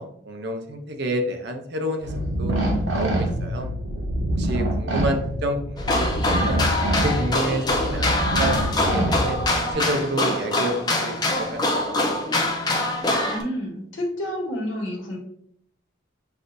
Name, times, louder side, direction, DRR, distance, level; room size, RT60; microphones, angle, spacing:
voice 1, 0.0-2.1 2.4-2.5 2.9-3.7 4.4-6.1 6.4-6.6 7.0-9.4 9.7-12.0, right 1 dB, 55° right, 4 dB, 0.6 m, -29 dB
sound 1, 2.0-9.7, right 1 dB, 85° right, 1.0 m, -26 dB
sound 2, 5.8-13.4, left 1 dB, 20° left, 0.5 m, -24 dB
voice 2, 13.2-15.2, equal, 75° left, -1 dB, 1.4 m, -29 dB
6.2 x 2.6 x 2.6 m, 0.69 s
head